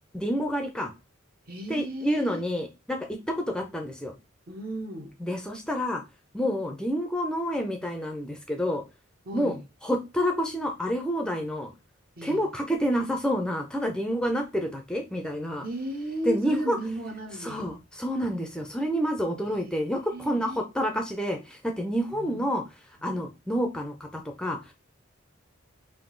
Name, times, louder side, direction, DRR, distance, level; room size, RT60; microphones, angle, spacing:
voice 1, 0.1-0.9 1.7-4.1 5.2-6.0 6.3-8.8 9.3-9.6 9.8-11.7 12.2-15.6 16.3-16.8 17.4-22.6 23.0-24.7, equal, 5° left, 0.5 m, -28 dB
voice 2, 1.5-2.4 4.5-5.1 9.2-9.6 12.2-12.4 15.6-17.6 20.1-20.6 22.1-22.4, right 1 dB, 45° right, 0.8 m, -35 dB
3.7 x 2.6 x 3.8 m
head